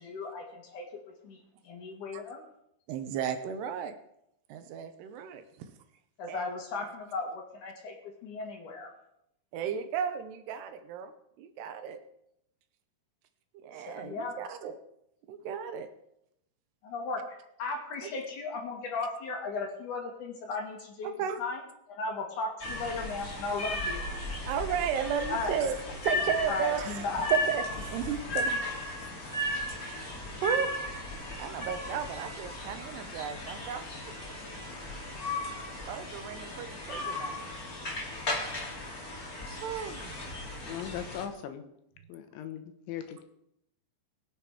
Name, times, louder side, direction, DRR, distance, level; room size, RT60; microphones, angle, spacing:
voice 1, 0.0-1.4 1.6-2.4 6.2-8.9 13.9-14.4 16.8-21.1 21.4-21.6 21.9-24.1 25.3-25.6 26.5-27.3, left 3 dB, 55° left, 2 dB, 2.9 m, -36 dB
voice 2, 2.9-4.0 4.5-5.7 6.3-6.5 9.5-11.1 11.4-12.0 13.5-14.8 15.3-15.9 18.0-18.1 21.0-21.4 24.5-28.6 29.0-29.1 29.5-30.1 30.4-30.8 31.4-33.9 35.8-37.4 39.6-40.7, right 8 dB, 80° right, 9 dB, 2.8 m, -34 dB
sound 1, 22.6-41.2, left 1 dB, 30° left, 1.9 m, -36 dB
voice 3, 40.6-41.6 42.1-43.2, left 9 dB, 90° left, 8 dB, 3.6 m, -39 dB
21.5 x 7.7 x 4.9 m, 0.78 s
omnidirectional pair, 5.1 m